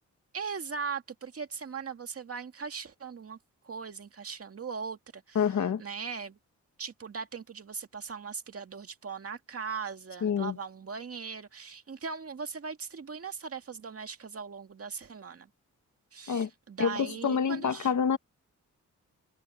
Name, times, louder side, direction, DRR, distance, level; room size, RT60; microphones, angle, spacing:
voice 1, 0.3-3.4 3.6-6.4 6.8-15.5 16.1-17.9, right 5 dB, 50° right, 2.1 m, -39 dB
voice 2, 5.3-5.8 10.2-10.6 16.3-16.5 16.8-18.2, left 7 dB, 65° left, 1.7 m, -27 dB
cardioid pair, 95°, 31 cm